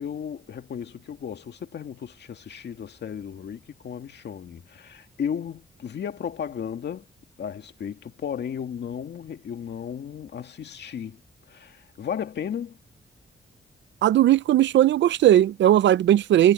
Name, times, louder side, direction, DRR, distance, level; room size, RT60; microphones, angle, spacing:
voice 1, 0.0-7.1 7.4-11.2 11.5-12.8, left 8 dB, 70° left, 2.0 m, -34 dB
voice 2, 14.0-16.5, right 12 dB, 85° right, 0.5 m, -18 dB
wide cardioid pair, 125°, 18 cm